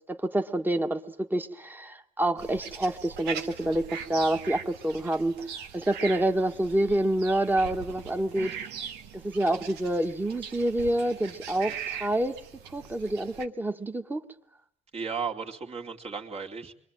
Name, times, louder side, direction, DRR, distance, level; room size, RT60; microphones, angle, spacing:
voice 1, 0.1-8.5 9.1-12.3 12.7-14.2, right 1 dB, 10° right, 6 dB, 1.8 m, -27 dB
sound 1, 2.4-13.5, right 7 dB, 85° right, 1.7 m, -40 dB
voice 2, 14.9-16.7, right 5 dB, 40° right, 2 dB, 2.8 m, -35 dB
27.0 x 23.0 x 9.2 m, 0.71 s
cardioid pair, 110°, 17 cm